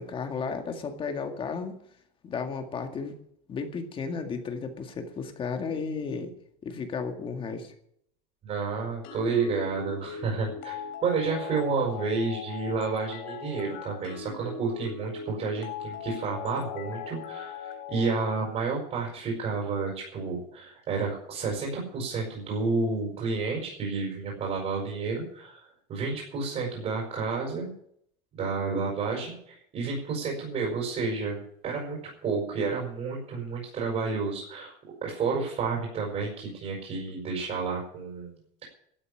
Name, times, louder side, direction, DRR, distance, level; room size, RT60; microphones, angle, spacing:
voice 1, 0.0-1.8 2.2-3.2 3.5-6.3 6.6-7.7, left 5 dB, 25° left, 5 dB, 2.0 m, -33 dB
voice 2, 8.4-27.7 28.3-34.7 35.0-38.7, right 4 dB, 35° right, -2 dB, 5.5 m, -30 dB
sound 1, 9.0-18.4, left 7 dB, 60° left, 3.0 m, -39 dB
13.0 x 8.3 x 10.0 m, 0.69 s
cardioid pair, 160°, 20 cm